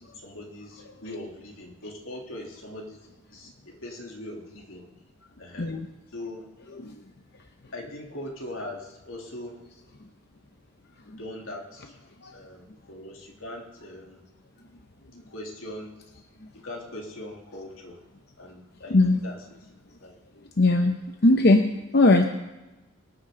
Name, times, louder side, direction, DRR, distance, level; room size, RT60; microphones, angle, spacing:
voice 1, 0.1-3.0 3.3-4.9 5.4-5.8 6.1-6.5 7.7-9.6 11.2-12.0 12.3-14.3 15.3-16.0 16.5-18.0 18.4-19.4 20.0-20.2, left 1 dB, 80° left, 0 dB, 3.1 m, -40 dB
voice 2, 20.6-20.9 21.2-22.3, left 2 dB, 50° left, 5 dB, 0.8 m, -19 dB
23.5 x 9.6 x 3.9 m, 1.1 s
head